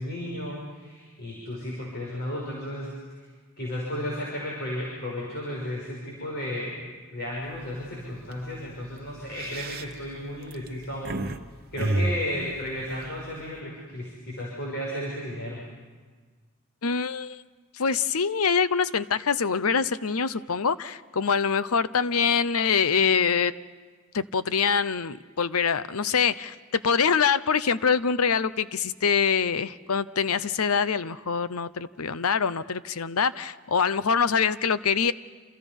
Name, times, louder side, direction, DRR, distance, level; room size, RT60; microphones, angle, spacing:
voice 1, 0.0-3.2 3.6-6.7 7.1-11.3 11.7-15.6, left 1 dB, 50° left, -4 dB, 6.5 m, -34 dB
sound 1, 7.4-7.7 8.1-8.3 9.1-11.4 11.8-13.6, right 1 dB, 45° right, 1.0 m, -30 dB
voice 2, 16.8-17.4 17.7-23.5 24.1-35.1, left 6 dB, 90° left, 15 dB, 0.8 m, -24 dB
28.5 x 28.0 x 5.5 m, 1.4 s
head